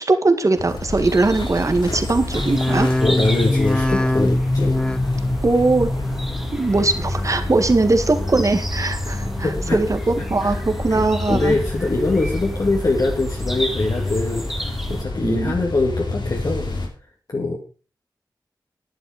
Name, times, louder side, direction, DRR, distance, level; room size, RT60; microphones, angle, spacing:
voice 1, 0.0-2.9 5.4-5.9 6.5-11.6 15.2-15.5, right 3 dB, 45° right, 7 dB, 1.8 m, -20 dB
sound 1, 0.5-16.9, left 2 dB, 85° left, 3.6 m, -30 dB
sound 2, 1.0-15.0, equal, 5° right, 2.1 m, -31 dB
sound 3, 2.3-7.7 8.0-8.6 9.1-9.7 10.2-10.8 11.3-11.9 12.4-13.0 13.5-13.6, left 1 dB, 15° left, 0.9 m, -25 dB
voice 2, 3.0-4.8 9.4-9.8 10.4-10.6 10.9-16.7 17.3-17.6, left 2 dB, 50° left, 0 dB, 2.1 m, -23 dB
11.5 x 10.5 x 5.0 m, 0.36 s
wide cardioid pair, 95°, 8 cm